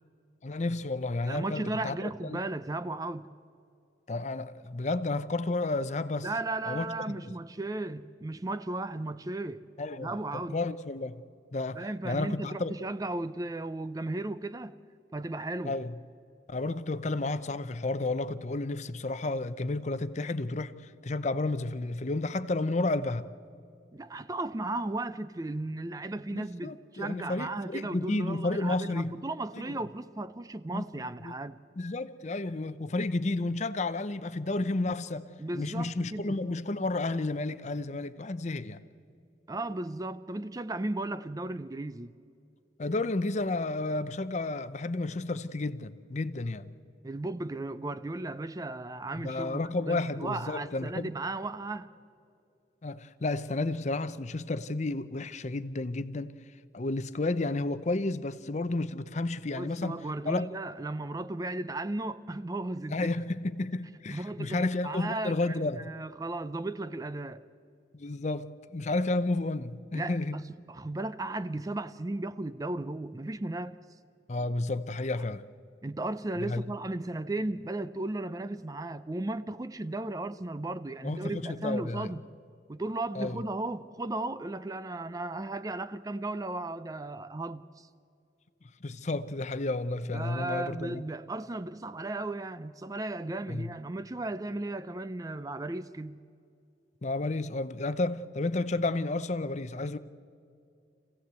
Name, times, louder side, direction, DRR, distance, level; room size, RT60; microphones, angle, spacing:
voice 1, 0.4-2.4 4.1-6.3 6.7-6.9 7.2-7.3 9.8-11.2 11.5-12.7 15.6-15.9 16.5-23.2 26.3-29.2 29.5-29.8 30.7-30.8 31.2-31.3 31.8-35.3 35.5-38.8 42.8-46.7 49.1-51.1 52.8-56.3 56.7-60.0 60.3-60.5 62.9-65.9 67.9-70.4 74.3-75.4 76.4-76.6 81.0-82.1 83.1-83.4 88.8-91.0 93.5-93.7 97.0-100.0, left 2 dB, 40° left, 0.7 m, -31 dB
voice 2, 1.3-3.3 6.2-9.6 10.0-10.6 11.7-14.8 15.1-15.8 23.9-31.6 35.4-36.4 39.5-42.1 47.0-51.9 59.5-63.1 64.1-67.5 69.9-73.8 75.1-75.2 75.8-82.2 82.7-87.9 90.1-96.2, right 2 dB, 20° right, 0.4 m, -35 dB
26.0 x 16.0 x 8.1 m
head